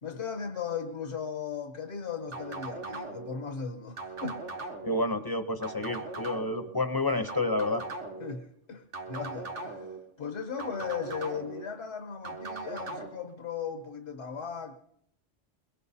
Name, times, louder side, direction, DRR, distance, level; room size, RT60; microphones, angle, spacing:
voice 1, 0.0-4.4 8.2-14.8, left 6 dB, 70° left, 1.3 m, -37 dB
sound 1, 2.3-3.4 4.0-5.0 5.6-6.7 7.3-8.3 8.9-10.0 10.6-11.6 12.2-13.1, right 3 dB, 75° right, 1.9 m, -39 dB
voice 2, 4.8-7.8, left 2 dB, 25° left, 0.7 m, -29 dB
23.5 x 21.5 x 2.7 m
omnidirectional pair, 1.2 m